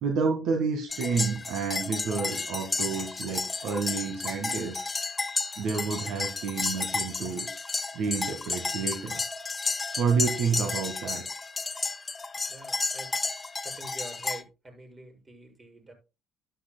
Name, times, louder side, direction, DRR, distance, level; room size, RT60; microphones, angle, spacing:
voice 1, 0.0-4.8 5.6-7.5 7.9-9.2 10.0-11.2, right 5 dB, 70° right, 3 dB, 1.8 m, -29 dB
sound 1, 0.9-14.4, left 4 dB, 30° left, 1.2 m, -32 dB
voice 2, 12.5-13.1 13.6-15.9, right 2 dB, 30° right, 2 dB, 7.2 m, -46 dB
12.0 x 11.0 x 2.3 m, 0.28 s
hypercardioid pair, 60°, 0 cm